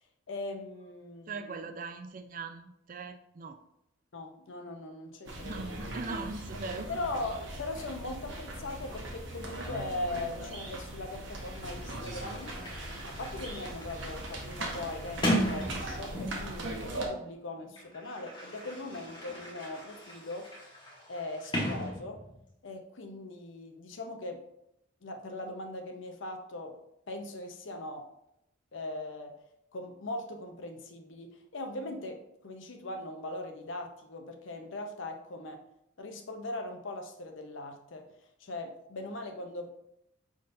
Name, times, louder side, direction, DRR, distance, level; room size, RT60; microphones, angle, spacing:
voice 1, 0.3-1.8 4.1-6.0 6.9-12.5 13.1-20.5 21.1-22.2 22.6-24.4 25.0-26.8 27.1-28.1 28.7-29.4 29.7-35.6 36.0-38.1 38.4-39.7, left 2 dB, 70° left, 4 dB, 0.7 m, -40 dB
voice 2, 1.3-3.6 5.4-6.9, right 4 dB, 40° right, 8 dB, 0.4 m, -40 dB
sound 1, 5.2-17.1, right 1 dB, 65° right, 0.9 m, -40 dB
Sliding door, 11.2-11.3 11.5-16.6 17.5-22.5, equal, 25° left, 1.0 m, -37 dB
5.4 x 3.7 x 2.6 m, 0.79 s
head